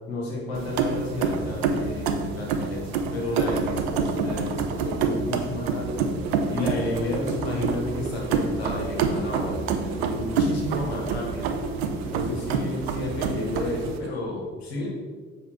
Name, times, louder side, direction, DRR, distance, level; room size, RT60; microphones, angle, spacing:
voice 1, 0.1-6.1 6.5-11.5 12.1-14.9, left 2 dB, 90° left, -3 dB, 1.2 m, -31 dB
sound 1, 0.5-14.0, right 5 dB, 85° right, 0.5 m, -28 dB
sound 2, 5.9-14.2, right 2 dB, 60° right, 1.0 m, -38 dB
6.9 x 4.6 x 3.8 m, 1.5 s
hypercardioid pair, 45°, 30 cm